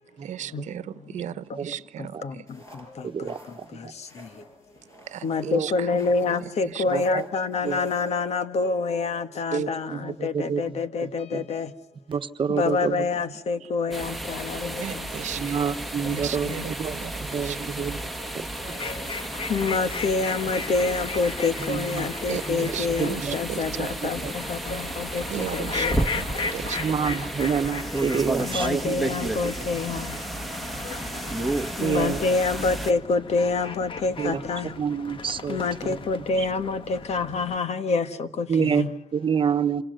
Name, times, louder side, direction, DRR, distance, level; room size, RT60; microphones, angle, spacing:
voice 1, 0.1-2.4 4.9-6.0 6.4-6.8 9.5-9.6 13.6-13.7 14.8-15.6 16.1-17.1 17.4-17.6 22.3-24.0 25.3-26.8, right 10 dB, 85° right, 1.0 m, -36 dB
voice 2, 2.0-4.5 5.2-11.7 12.5-15.1 16.0-16.7 18.2-18.3 18.6-26.1 28.4-30.2 30.8-31.4 31.8-34.7 35.5-38.9, left 4 dB, 65° left, 1.6 m, -27 dB
sound 1, 2.5-8.1, equal, 25° left, 7.3 m, -50 dB
voice 3, 3.0-3.9 5.4-5.7 6.9-7.3 7.6-7.8 9.5-11.5 12.1-13.1 15.4-16.5 16.8-18.0 18.3-18.5 21.6-22.1 22.5-23.4 23.8-24.3 26.8-29.5 31.8-32.2 34.2-36.0 36.4-36.5 38.5-39.8, right 6 dB, 45° right, 1.2 m, -28 dB
sound 2, 13.9-32.9, right 1 dB, ahead, 1.7 m, -32 dB
sound 3, 18.7-37.6, left 5 dB, 45° left, 1.4 m, -37 dB
28.0 x 26.0 x 6.6 m
cardioid pair, 115°, 12 cm